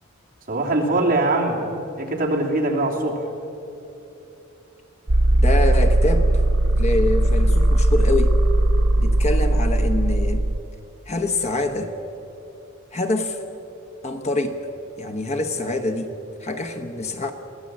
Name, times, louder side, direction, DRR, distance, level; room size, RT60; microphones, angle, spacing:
voice 1, 0.5-1.6 2.0-3.3, right 2 dB, 45° right, -1 dB, 2.9 m, -22 dB
sound 1, 5.1-10.6, right 1 dB, 75° right, 0.9 m, -18 dB
voice 2, 5.4-6.4 6.7-8.3 9.0-10.5 11.1-11.9 12.9-13.4 14.0-14.6 15.0-17.3, left 2 dB, 35° left, 6 dB, 1.0 m, -25 dB
22.5 x 15.5 x 7.4 m, 3.0 s
head